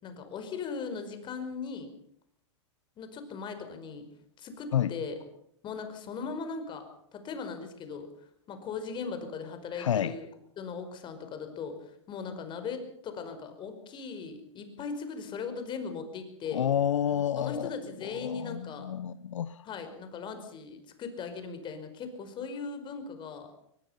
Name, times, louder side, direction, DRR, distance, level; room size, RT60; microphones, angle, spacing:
voice 1, 0.0-1.9 3.0-4.1 4.4-5.1 5.6-6.9 7.1-8.1 8.5-10.3 10.6-16.6 17.4-18.9 19.7-23.5, left 5 dB, 30° left, 5.2 m, -38 dB
voice 2, 9.7-10.2 16.5-17.7 18.0-19.7, left 9 dB, 80° left, 1.0 m, -29 dB
22.5 x 21.0 x 5.8 m
hypercardioid pair, 115°, 16 cm